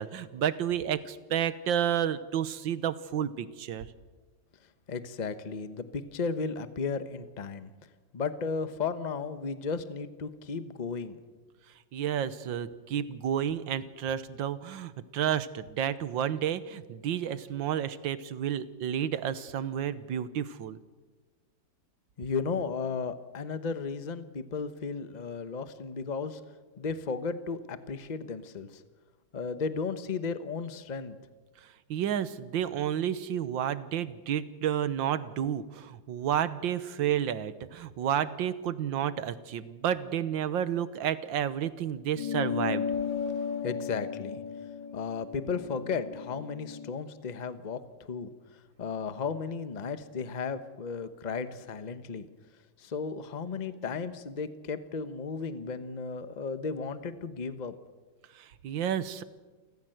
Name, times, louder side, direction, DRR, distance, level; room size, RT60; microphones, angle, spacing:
voice 1, 0.0-3.9 11.9-20.8 31.9-42.9 58.4-59.2, right 9 dB, 80° right, 14 dB, 1.7 m, -31 dB
voice 2, 4.9-7.7 8.1-11.2 22.2-26.4 26.8-28.8 29.3-31.1 43.6-44.4 44.9-47.8 48.1-48.3 48.8-52.3 52.8-57.7, left 5 dB, 30° left, 11 dB, 0.9 m, -34 dB
sound 1, 42.2-47.0, left 7 dB, 75° left, 2.5 m, -34 dB
28.5 x 15.0 x 7.9 m, 1.3 s
omnidirectional pair, 2.0 m